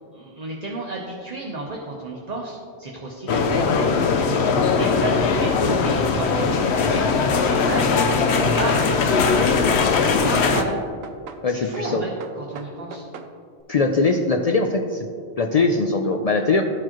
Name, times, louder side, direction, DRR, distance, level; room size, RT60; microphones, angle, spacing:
voice 1, 0.1-3.7 4.1-4.5 4.8-8.0 8.6-9.5 10.0-10.8 11.5-12.1 12.4-13.0, right 2 dB, 40° right, -2 dB, 0.8 m, -31 dB
sound 1, 3.3-10.6, left 5 dB, 80° left, 0.9 m, -20 dB
sound 2, 6.2-7.7 8.0-9.6 9.9-11.4 11.7-13.3, right 6 dB, 70° right, 0.8 m, -39 dB
voice 2, 11.4-12.0 13.7-15.1 15.4-16.6, left 3 dB, 60° left, 3 dB, 0.4 m, -21 dB
13.0 x 4.6 x 2.9 m, 2.2 s
omnidirectional pair, 1.1 m